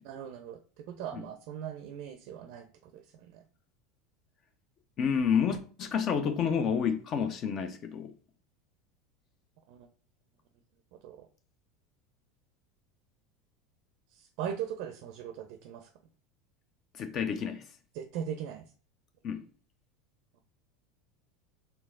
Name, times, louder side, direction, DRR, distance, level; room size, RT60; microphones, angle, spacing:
voice 1, 0.0-3.4 9.7-9.9 10.9-11.3 14.1-15.9 17.9-18.7, right 9 dB, 65° right, 0.4 m, -40 dB
voice 2, 5.0-8.1 16.9-17.7 19.2-19.5, left 7 dB, 45° left, 0.5 m, -29 dB
4.5 x 3.3 x 2.5 m
hypercardioid pair, 85°, 0 cm